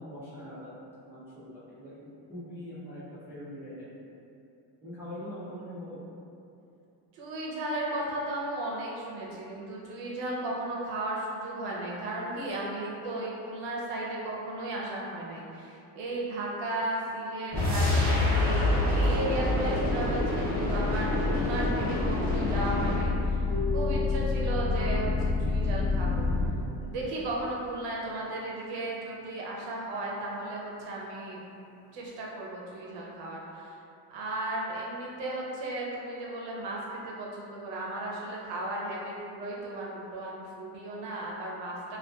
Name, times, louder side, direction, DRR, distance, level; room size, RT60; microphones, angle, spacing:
voice 1, 0.0-3.0 3.3-3.8 4.8-6.0, equal, 5° right, -13 dB, 0.3 m, -42 dB
voice 2, 7.1-23.5 23.7-26.3 26.8-31.4 31.9-33.7 34.1-42.0, right 1 dB, 85° right, -4 dB, 0.7 m, -35 dB
sound 1, 17.5-23.1, left 2 dB, 20° right, 0.9 m, -27 dB
sound 2, 20.2-26.5, left 3 dB, 80° left, 0.5 m, -29 dB
Harp, 23.5-29.6, left 4 dB, 25° left, 0.7 m, -41 dB
2.5 x 2.3 x 2.2 m, 2.7 s
cardioid pair, 160°, 43 cm